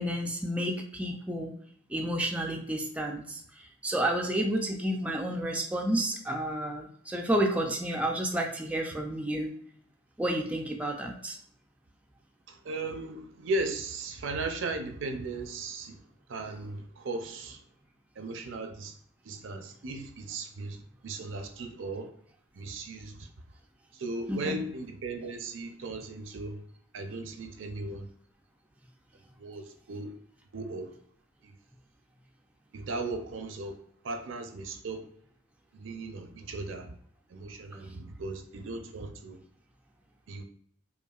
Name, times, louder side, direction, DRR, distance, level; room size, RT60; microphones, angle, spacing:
voice 1, 0.0-1.5 1.9-3.4 3.8-9.5 10.2-11.4 24.3-24.6, right 1 dB, 5° right, 0.3 m, -30 dB
voice 2, 12.5-15.9 16.3-17.6 18.2-18.9 19.3-22.1 22.6-23.3 24.0-26.6 26.9-28.1 29.4-30.1 30.5-30.9 31.4-31.5 32.7-33.8 34.0-35.0 35.7-36.9 37.3-39.4 40.3-40.4, right 2 dB, 75° right, 0.5 m, -37 dB
5.2 x 2.3 x 2.3 m
head